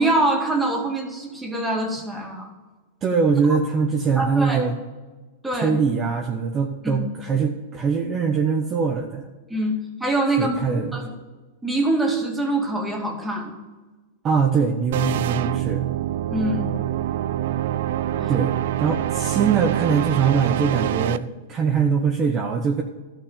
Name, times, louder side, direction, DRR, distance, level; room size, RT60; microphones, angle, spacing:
voice 1, 0.0-2.5 3.5-3.6 4.2-4.6 5.4-5.8 6.8-7.0 9.5-10.6 10.9-11.1 11.6-13.5 16.3-16.7 18.1-18.3, right 2 dB, 5° right, 0 dB, 2.3 m, -24 dB
voice 2, 3.0-4.7 5.5-9.3 10.4-11.0 14.2-15.9 18.3-22.8, right 5 dB, 30° right, 2 dB, 1.1 m, -22 dB
sound 1, 14.9-21.2, right 12 dB, 65° right, 0.4 m, -25 dB
13.0 x 6.0 x 7.2 m, 1.2 s
hypercardioid pair, 120°, 0 cm